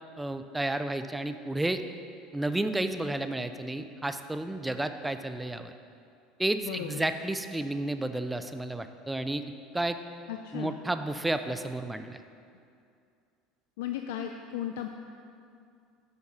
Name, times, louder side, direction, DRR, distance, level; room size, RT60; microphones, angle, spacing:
voice 1, 0.2-1.8 2.3-5.7 6.4-9.4 9.7-10.0 10.5-12.2, right 2 dB, 10° right, 9 dB, 0.4 m, -31 dB
voice 2, 6.6-7.1 10.3-10.8 13.8-14.9, left 10 dB, 85° left, 5 dB, 0.3 m, -36 dB
8.5 x 4.1 x 5.9 m, 2.4 s
supercardioid pair, 120°, 0 cm